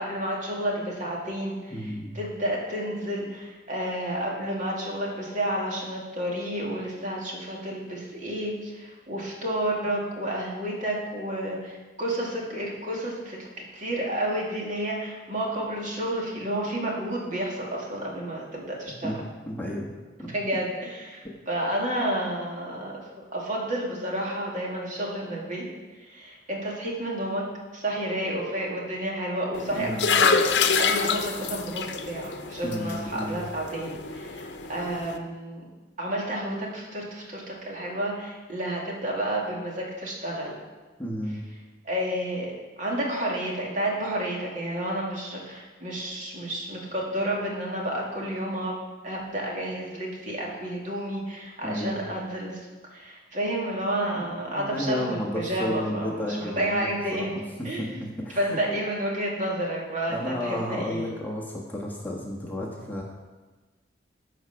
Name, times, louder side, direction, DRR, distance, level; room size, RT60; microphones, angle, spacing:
voice 1, 0.0-19.2 20.2-25.6 26.0-27.4 27.7-35.6 36.0-40.6 41.8-52.6 52.9-57.3 57.6-57.9 58.4-61.1, right 1 dB, 45° right, -3 dB, 2.3 m, -31 dB
voice 2, 1.7-2.2 19.0-19.2 19.5-19.9 20.2-20.3 29.8-30.1 32.6-33.4 41.0-41.4 51.6-52.0 54.5-57.3 57.6-58.6 60.1-63.0, left 1 dB, 10° left, -3 dB, 1.4 m, -32 dB
sound 1, 29.5-35.2, left 5 dB, 70° left, 0.7 m, -27 dB
13.5 x 4.9 x 5.8 m, 1.3 s
head